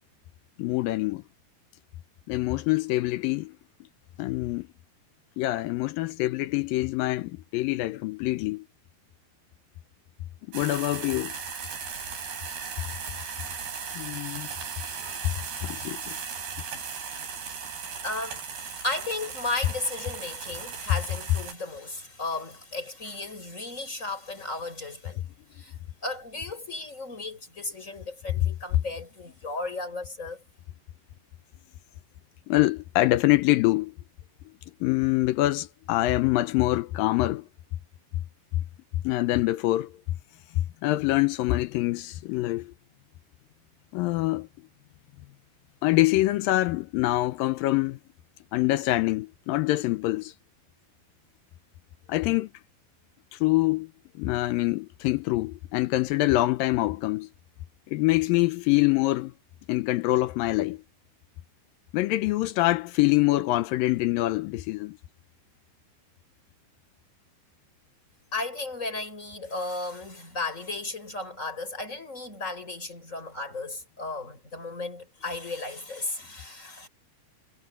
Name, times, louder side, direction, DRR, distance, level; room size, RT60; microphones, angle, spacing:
voice 1, 0.6-1.2 2.3-3.6 4.2-4.7 5.4-8.7 10.5-11.3 13.9-14.5 15.0-15.3 15.6-16.2 32.5-33.9 34.8-37.5 39.0-40.0 40.6-42.7 43.9-44.5 45.8-48.0 48.5-50.3 52.1-52.5 53.3-53.9 54.2-57.3 57.9-59.3 59.7-60.8 61.9-65.0, left 18 dB, 80° left, 2.2 m, -25 dB
sound 1, 10.5-21.5, right 6 dB, 85° right, 7.4 m, -37 dB
voice 2, 18.0-25.2 25.5-25.7 26.0-30.4 68.3-76.9, left 2 dB, 20° left, 6.3 m, -35 dB
omnidirectional pair, 4.5 m